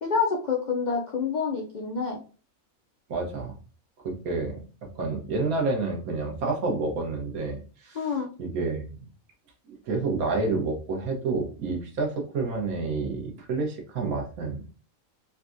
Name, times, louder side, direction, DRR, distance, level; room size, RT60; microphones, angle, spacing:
voice 1, 0.0-2.2 7.9-8.3, left 5 dB, 75° left, 0 dB, 0.4 m, -27 dB
voice 2, 3.1-3.5 4.0-4.6 4.9-8.1 8.4-8.9 9.7-14.6, right 3 dB, 80° right, 1 dB, 1.4 m, -29 dB
4.0 x 2.3 x 2.5 m, 0.37 s
omnidirectional pair, 1.5 m